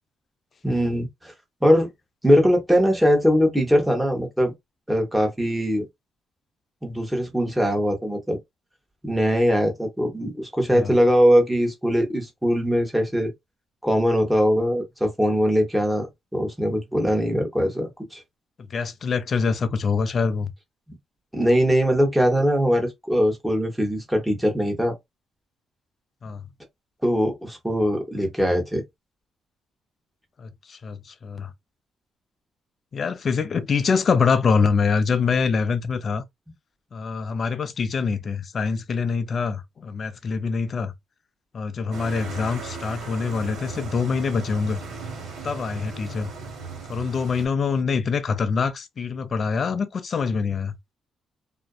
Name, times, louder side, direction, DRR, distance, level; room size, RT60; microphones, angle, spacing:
voice 1, 0.6-1.3 1.6-1.9 2.2-4.5 4.9-5.8 6.8-8.4 9.0-13.3 13.8-18.2 21.3-24.9 27.0-28.8, equal, 5° right, 1.0 m, -21 dB
voice 2, 18.6-20.5 26.2-26.5 30.4-31.5 32.9-36.2 36.9-40.9 41.5-44.8 45.4-46.3 46.9-50.8, left 5 dB, 45° left, 0.4 m, -25 dB
sound 1, 41.9-47.5, right 4 dB, 85° right, 1.1 m, -36 dB
2.5 x 2.2 x 2.3 m
cardioid pair, 90°, 0 cm